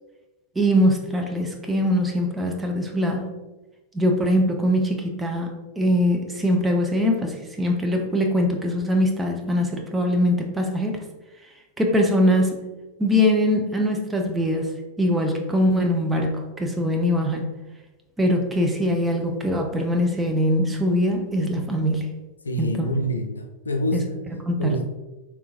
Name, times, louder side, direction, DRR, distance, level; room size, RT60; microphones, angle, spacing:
voice 1, 0.6-3.3 3.9-11.0 11.8-12.7 13.0-14.7 15.0-17.5 18.2-22.0 22.6-22.8 23.9-24.0 24.5-24.7, equal, 10° right, 2 dB, 0.5 m, -22 dB
voice 2, 22.4-24.1 24.6-24.8, equal, 75° left, 5 dB, 0.3 m, -26 dB
3.3 x 3.0 x 2.4 m, 1.1 s
figure-of-eight pair, 90°, 0 cm